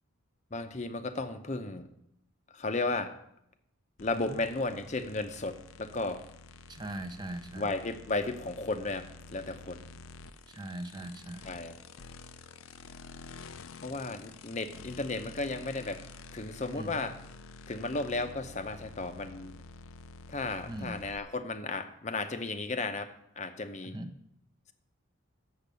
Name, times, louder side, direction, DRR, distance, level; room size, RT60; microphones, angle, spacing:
voice 1, 0.5-1.9 2.5-3.2 4.0-6.2 7.6-9.8 11.5-11.7 13.8-16.0 16.3-17.1 17.7-19.5 20.3-24.0, left 3 dB, 35° left, 9 dB, 0.7 m, -34 dB
sound 1, 4.0-21.2, left 4 dB, 75° left, 0.5 m, -49 dB
voice 2, 6.7-7.7 10.5-11.5 16.8-17.1 20.7-21.0 23.8-24.1, right 1 dB, 20° right, 7 dB, 0.6 m, -40 dB
8.6 x 7.2 x 6.7 m, 0.78 s
head